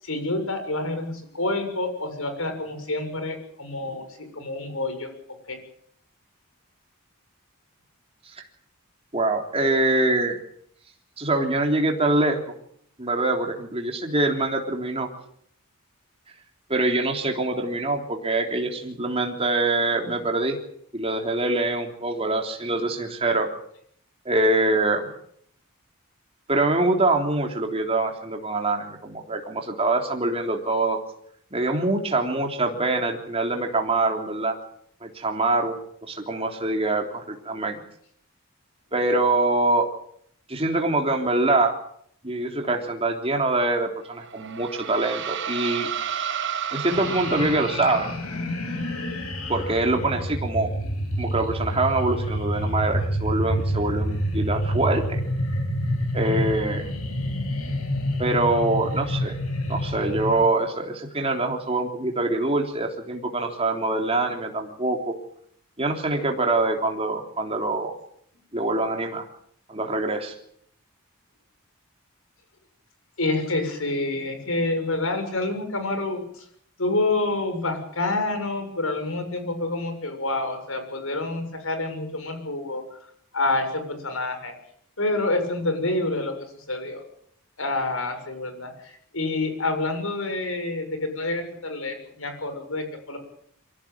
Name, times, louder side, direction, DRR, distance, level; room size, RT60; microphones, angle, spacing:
voice 1, 0.0-4.1 4.3-5.1 5.5-5.6 73.2-76.4 76.8-83.0 83.3-84.5 85.0-87.0 87.6-93.2, left 2 dB, 65° left, 8 dB, 7.1 m, -28 dB
voice 2, 9.1-10.4 11.2-12.4 13.0-15.1 16.7-20.6 20.9-23.5 24.3-25.1 26.5-31.0 31.5-34.6 35.0-35.8 36.1-37.8 38.9-39.9 40.5-41.7 42.2-45.9 46.7-48.1 49.5-50.7 51.2-55.2 56.1-56.8 58.2-59.3 59.7-65.1 65.8-67.9 68.5-69.2 69.7-70.4, right 2 dB, 25° right, 2 dB, 3.5 m, -24 dB
sound 1, 44.1-48.4, right 8 dB, 55° right, 1.3 m, -32 dB
sound 2, 46.9-60.4, equal, 85° left, 7.3 m, -28 dB
24.5 x 16.5 x 9.0 m, 0.67 s
head